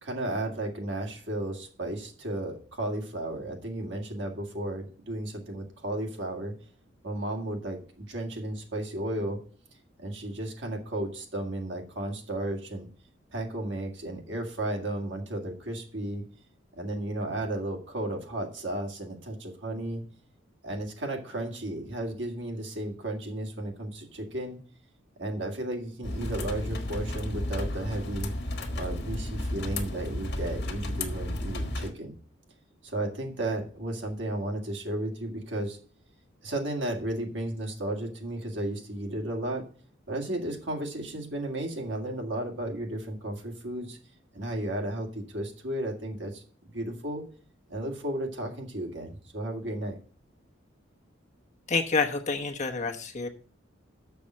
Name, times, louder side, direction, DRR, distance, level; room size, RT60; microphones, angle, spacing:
voice 1, 0.0-6.5 7.0-9.4 10.0-12.9 13.3-16.2 16.8-20.0 20.6-24.6 25.2-28.3 28.7-32.1 32.8-35.8 36.4-39.6 40.1-44.0 44.3-46.4 46.7-47.2 47.7-50.0, right 1 dB, 65° right, 2 dB, 2.1 m, -34 dB
sound 1, 26.0-31.9, left 1 dB, 55° left, 1.5 m, -33 dB
voice 2, 51.7-53.3, left 4 dB, 40° left, 4 dB, 1.1 m, -28 dB
6.9 x 5.7 x 7.5 m, 0.42 s
head